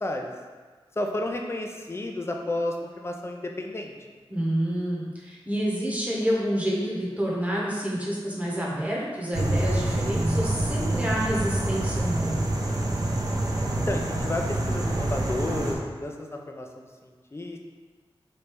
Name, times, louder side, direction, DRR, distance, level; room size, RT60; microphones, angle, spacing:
voice 1, 0.0-0.3 1.0-3.9 13.9-17.6, left 1 dB, 25° left, 2 dB, 0.5 m, -32 dB
voice 2, 4.3-12.4, equal, 15° right, -5 dB, 1.0 m, -28 dB
sound 1, 9.3-15.7, right 1 dB, 40° right, 0.6 m, -26 dB
3.3 x 2.7 x 4.5 m, 1.5 s
wide cardioid pair, 70°, 10 cm